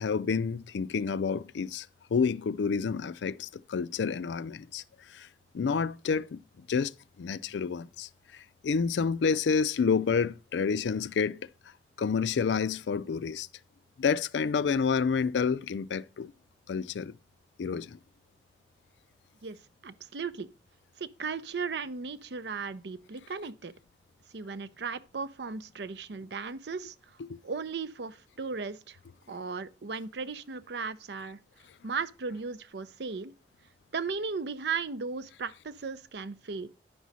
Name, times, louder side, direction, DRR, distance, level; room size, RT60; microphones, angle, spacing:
voice 1, 0.0-4.8 5.1-5.3 5.5-6.4 6.7-6.9 7.2-11.4 12.0-13.5 14.0-16.3 16.7-17.1 17.6-18.0 27.3-27.4, left 5 dB, 90° left, 0.4 m, -29 dB
voice 2, 19.4-20.5 21.0-23.7 24.3-26.9 27.4-29.0 29.3-31.4 31.8-33.3 33.9-36.7, right 5 dB, 75° right, 0.6 m, -36 dB
10.0 x 6.2 x 4.0 m
head